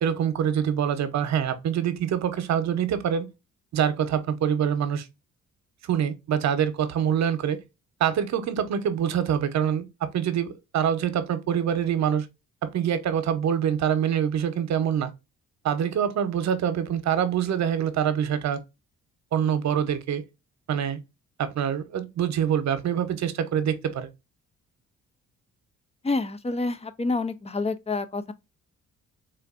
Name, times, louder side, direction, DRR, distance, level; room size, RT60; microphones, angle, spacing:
voice 1, 0.0-3.3 3.7-5.1 5.8-7.6 8.0-12.3 12.6-15.1 15.6-18.6 19.3-20.2 20.7-21.0 21.4-24.1, right 9 dB, 65° right, 0.8 m, -25 dB
voice 2, 26.0-28.3, left 3 dB, 20° left, 0.5 m, -28 dB
4.2 x 2.5 x 2.4 m
cardioid pair, 90°, 30 cm